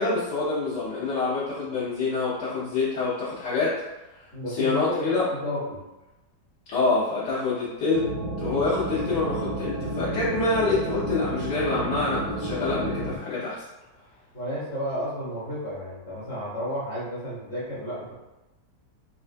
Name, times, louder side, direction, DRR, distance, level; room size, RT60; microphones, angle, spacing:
voice 1, 0.0-3.8 4.5-5.3 6.7-8.1 8.4-13.6, left 3 dB, 85° left, -12 dB, 1.6 m, -26 dB
voice 2, 4.3-5.8 14.3-18.1, equal, 45° left, -8 dB, 1.0 m, -32 dB
sound 1, 7.9-13.2, right 2 dB, 85° right, 1.2 m, -31 dB
4.2 x 2.3 x 2.5 m, 0.99 s
omnidirectional pair, 1.8 m